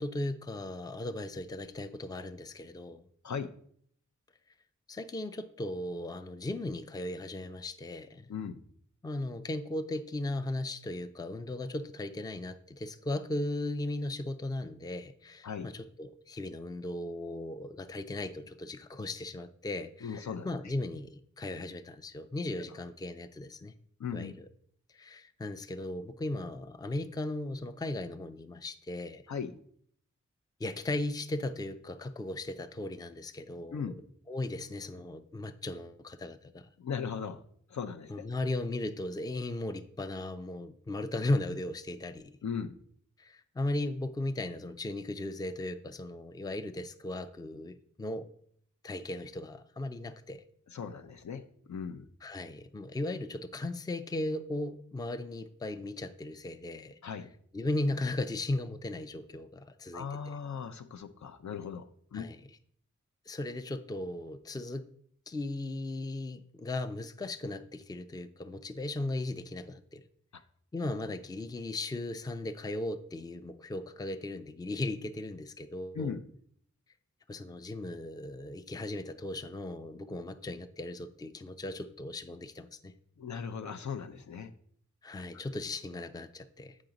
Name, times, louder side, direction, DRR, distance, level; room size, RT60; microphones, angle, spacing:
voice 1, 0.0-3.0 4.9-8.3 9.0-23.7 24.1-24.5 24.9-29.2 30.6-33.9 34.3-36.7 38.1-42.3 43.2-48.3 48.8-50.4 52.2-57.0 57.5-60.4 62.1-62.4 63.3-64.8 65.3-70.0 70.7-76.2 77.3-82.9 85.0-86.8, left 2 dB, 15° left, 9 dB, 0.4 m, -37 dB
voice 2, 8.3-8.6 15.4-15.7 20.0-20.5 24.0-24.4 29.3-29.5 33.7-34.0 36.8-37.4 37.7-38.3 42.4-42.8 50.7-51.4 51.7-52.1 57.0-57.3 59.9-61.8 62.1-62.3 75.9-76.2 83.2-84.5, left 6 dB, 65° left, 8 dB, 0.6 m, -38 dB
7.3 x 4.9 x 3.9 m, 0.63 s
cardioid pair, 55°, 31 cm